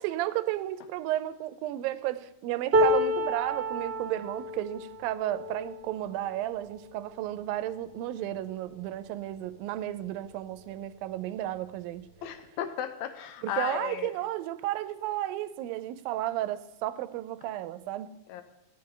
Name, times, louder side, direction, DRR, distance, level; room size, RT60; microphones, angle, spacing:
voice 1, 0.0-12.1 13.4-18.1, right 14 dB, 85° right, 2.3 m, -33 dB
sound 1, 2.7-8.9 9.5-9.7 9.9-10.7 11.7-11.8, equal, 50° right, 0.7 m, -31 dB
voice 2, 12.2-14.1 18.3-18.4, left 9 dB, 80° left, 1.6 m, -35 dB
14.5 x 9.8 x 3.8 m
omnidirectional pair, 4.0 m